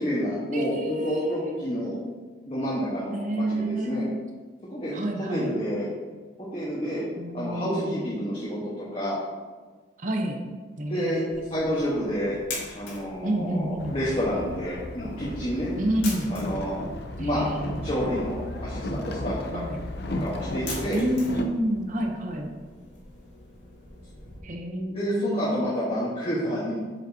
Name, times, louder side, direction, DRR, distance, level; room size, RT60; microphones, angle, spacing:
voice 1, 0.0-2.0 2.5-4.1 4.7-5.9 6.5-7.0 7.3-9.2 10.9-11.2 11.5-12.3 12.8-15.7 16.3-16.8 17.2-17.5 17.8-19.6 20.1-21.0 24.9-26.8, equal, 30° left, -8 dB, 1.2 m, -29 dB
voice 2, 0.5-1.6 3.1-4.3 4.9-5.5 7.2-8.0 10.0-10.4 10.8-11.8 13.2-14.0 15.8-16.3 17.2-18.0 19.5-19.9 20.9-22.5 24.4-25.7, right 1 dB, 40° right, 2 dB, 0.8 m, -29 dB
sound 1, 11.3-24.4, left 3 dB, 80° left, 1.9 m, -43 dB
Boat Water vehicle, 13.8-21.4, left 1 dB, 55° left, 0.6 m, -34 dB
7.7 x 5.2 x 2.8 m, 1.4 s
head